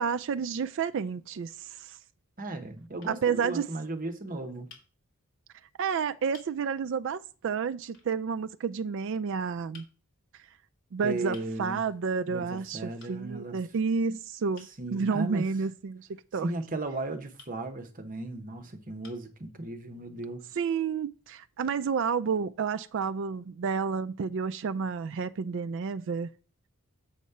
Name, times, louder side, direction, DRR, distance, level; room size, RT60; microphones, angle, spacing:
voice 1, 0.0-2.0 3.1-3.7 5.8-9.8 10.9-16.5 20.6-26.3, right 5 dB, 60° right, 0.4 m, -30 dB
voice 2, 2.4-4.7 11.0-11.8 12.2-13.6 14.8-15.5 16.4-20.4, right 2 dB, 40° right, 1.1 m, -36 dB
sound 1, 3.0-3.2 4.7-4.9 5.7-5.8 6.3-6.5 7.9-8.1 9.7-9.9 11.3-11.5 13.0-13.2 14.5-14.8 17.4-17.6 18.4-18.5 19.0-19.3, left 6 dB, 60° left, 2.2 m, -53 dB
7.4 x 4.2 x 6.7 m
head